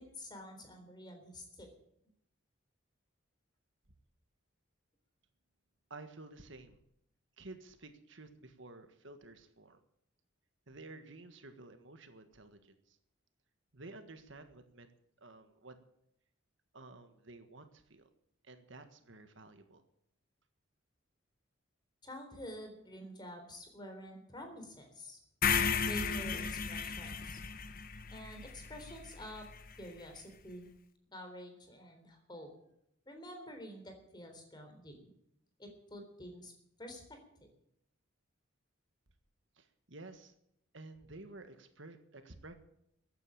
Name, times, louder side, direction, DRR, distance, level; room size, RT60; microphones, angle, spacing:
voice 1, 0.0-1.7 22.0-25.2 25.9-27.4 28.1-29.5 29.8-30.7 31.1-32.5 33.1-35.1 35.6-36.5 36.8-37.5, equal, 20° left, 4 dB, 3.8 m, -49 dB
voice 2, 5.9-6.8 7.4-9.8 10.7-13.0 13.7-14.9 15.2-15.8 16.7-18.1 18.4-19.8 39.6-40.3 40.7-42.5, right 2 dB, 65° right, 8 dB, 1.7 m, -52 dB
sound 1, 25.4-29.6, left 6 dB, 45° left, 1.0 m, -34 dB
15.0 x 9.4 x 8.7 m, 0.76 s
head